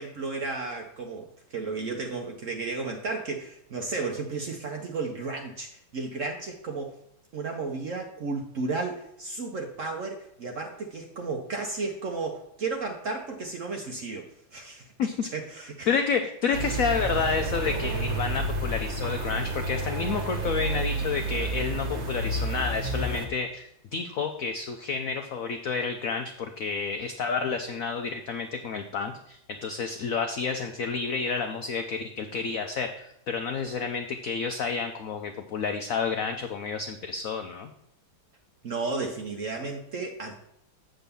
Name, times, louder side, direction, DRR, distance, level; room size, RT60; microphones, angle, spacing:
voice 1, 0.0-7.0 7.3-14.9 15.3-15.9 38.6-40.3, right 3 dB, 60° right, 3 dB, 0.8 m, -33 dB
voice 2, 15.0-15.3 15.9-37.7, left 5 dB, 85° left, 6 dB, 0.7 m, -30 dB
sound 1, 16.5-23.3, right 2 dB, 40° right, 1.3 m, -30 dB
8.0 x 3.9 x 6.8 m, 0.78 s
omnidirectional pair, 2.2 m